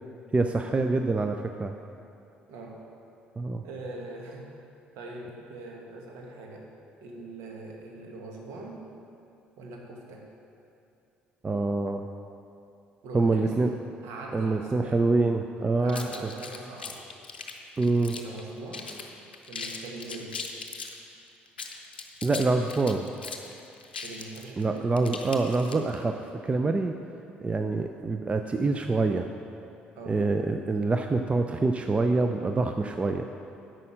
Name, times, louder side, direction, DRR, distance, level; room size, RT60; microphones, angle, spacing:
voice 1, 0.3-1.7 3.4-3.6 11.4-12.1 13.1-13.7 14.3-16.1 17.8-18.2 22.2-23.1 24.6-26.2 26.4-26.9 27.4-29.3 30.1-33.2, right 3 dB, 25° right, 6 dB, 0.5 m, -25 dB
voice 2, 2.5-2.8 3.6-4.5 4.9-6.7 7.0-8.9 9.6-10.2 13.0-15.0 15.8-17.0 18.1-18.9 19.5-20.3 24.0-24.9 29.9-30.2, right 2 dB, 65° right, 0 dB, 1.7 m, -42 dB
sound 1, 15.9-18.4 18.7-19.1 19.3-21.0 21.5-26.0, left 5 dB, 90° left, 0.6 m, -39 dB
11.0 x 7.7 x 4.9 m, 2.6 s
figure-of-eight pair, 50°, 5 cm